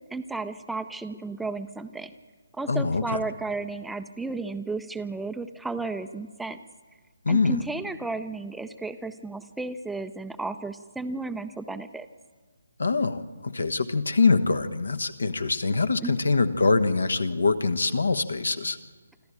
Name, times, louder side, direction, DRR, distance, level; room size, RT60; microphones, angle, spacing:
voice 1, 0.1-2.1 2.6-6.6 7.3-12.1 16.0-16.1, right 3 dB, 5° right, 9 dB, 0.5 m, -33 dB
voice 2, 2.7-3.2 7.2-7.6 12.8-18.8, left 4 dB, 70° left, 12 dB, 1.3 m, -24 dB
25.5 x 14.0 x 8.7 m, 1.5 s
figure-of-eight pair, 145°, 0 cm